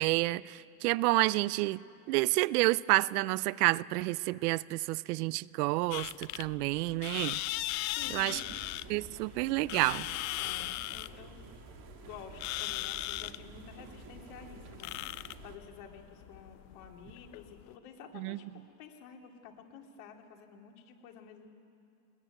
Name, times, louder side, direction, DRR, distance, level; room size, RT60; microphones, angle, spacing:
voice 1, 0.0-1.8 2.1-7.4 8.1-8.4 8.9-10.1 18.1-18.4, right 20 dB, 70° right, 0.6 m, -29 dB
sound 1, 5.9-17.7, left 18 dB, 40° left, 0.5 m, -39 dB
voice 2, 7.9-8.6 10.4-11.4 12.0-15.2 15.4-18.4 18.8-21.5, left 6 dB, 65° left, 2.9 m, -50 dB
sound 2, 8.0-15.6, right 7 dB, 45° right, 1.9 m, -51 dB
21.5 x 20.5 x 9.1 m
supercardioid pair, 115°, 48 cm